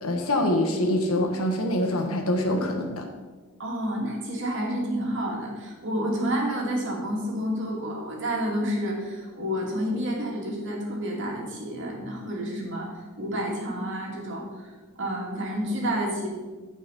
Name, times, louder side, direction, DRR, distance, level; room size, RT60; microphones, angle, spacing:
voice 1, 0.0-3.1, left 1 dB, 80° left, 3 dB, 1.6 m, -25 dB
voice 2, 3.6-14.7 15.0-16.3, equal, 60° right, -2 dB, 2.6 m, -29 dB
15.0 x 5.5 x 4.2 m, 1.4 s
head